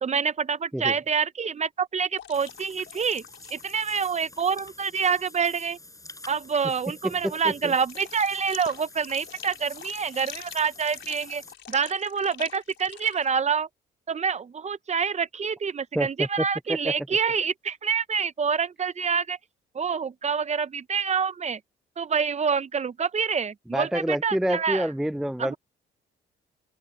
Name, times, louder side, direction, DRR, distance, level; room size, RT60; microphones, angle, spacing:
voice 1, 0.0-3.2 3.5-5.8 6.3-11.4 11.7-13.7 14.1-19.4 19.7-21.6 22.0-24.9 25.4-25.6, right 6 dB, 35° right, 0.8 m, -27 dB
sound 1, 2.2-3.9 4.2-4.4 7.8-13.3, left 10 dB, 70° left, 4.5 m, -45 dB
Water / Bathtub (filling or washing), 2.3-11.5, left 2 dB, 15° left, 7.2 m, -48 dB
voice 2, 7.0-7.7 15.9-16.9 23.7-25.5, equal, ahead, 0.4 m, -28 dB
open air
cardioid pair, 90°, 20 cm